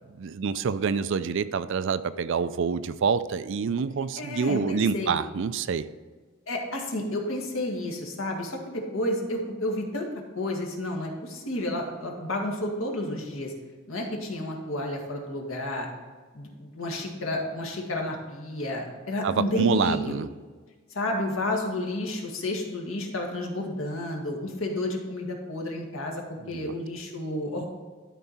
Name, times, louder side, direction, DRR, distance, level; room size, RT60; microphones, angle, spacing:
voice 1, 0.2-5.9 19.2-20.3 26.4-26.7, right 6 dB, 60° right, 14 dB, 0.4 m, -27 dB
voice 2, 4.2-5.2 6.5-10.1 10.3-13.5 13.9-15.9 16.3-20.2 20.9-27.6, left 1 dB, 70° left, 0 dB, 1.7 m, -31 dB
12.0 x 4.6 x 4.2 m, 1.4 s
head